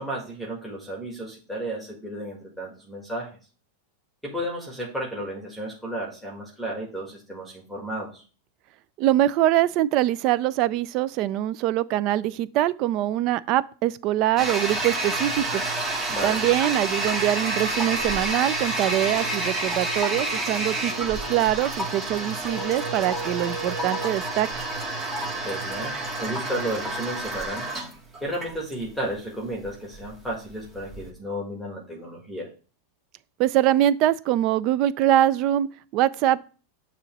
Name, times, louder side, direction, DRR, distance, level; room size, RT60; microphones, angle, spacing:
voice 1, 0.0-3.3 4.2-8.2 16.1-16.4 25.4-27.7 28.2-32.5, right 1 dB, 5° right, 1.6 m, -33 dB
voice 2, 9.0-15.6 16.2-24.5 33.4-36.4, right 13 dB, 45° right, 0.4 m, -23 dB
Toilet flush, 14.4-31.1, right 2 dB, 20° right, 1.5 m, -29 dB
sound 1, 17.8-18.3 18.8-19.4 19.9-20.4 20.9-21.4 22.5-24.2, right 3 dB, 75° right, 1.8 m, -37 dB
6.8 x 3.0 x 5.9 m
supercardioid pair, 130°, 0 cm